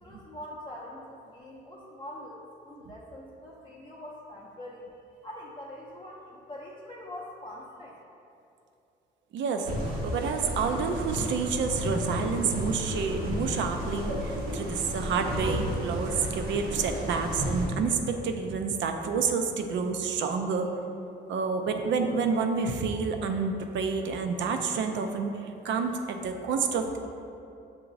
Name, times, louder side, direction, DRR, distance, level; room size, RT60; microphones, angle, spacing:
voice 1, 0.0-4.8 5.2-8.0, left 1 dB, 25° left, -6 dB, 0.6 m, -43 dB
voice 2, 9.3-9.7 10.0-20.7 21.3-27.1, right 5 dB, 70° right, 5 dB, 0.4 m, -29 dB
sound 1, 9.6-17.6, equal, 90° right, 1.0 m, -32 dB
6.9 x 2.9 x 2.6 m, 2.7 s
cardioid pair, 90°, 20 cm